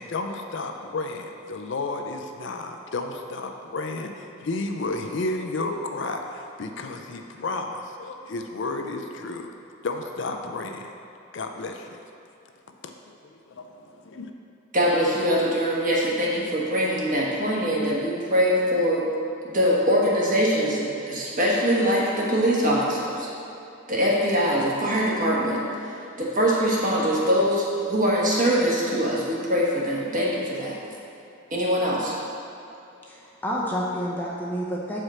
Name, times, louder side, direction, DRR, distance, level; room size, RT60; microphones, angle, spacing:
voice 1, 0.0-9.5 9.8-10.9 11.3-12.0 12.8-14.3, left 3 dB, 55° left, 4 dB, 0.4 m, -32 dB
voice 2, 14.7-19.0 19.4-23.3 23.9-25.9 26.2-30.8 31.5-32.1, equal, 40° right, -5 dB, 1.2 m, -23 dB
voice 3, 33.1-35.0, equal, 10° left, -4 dB, 0.6 m, -29 dB
7.7 x 4.9 x 4.2 m, 2.7 s
head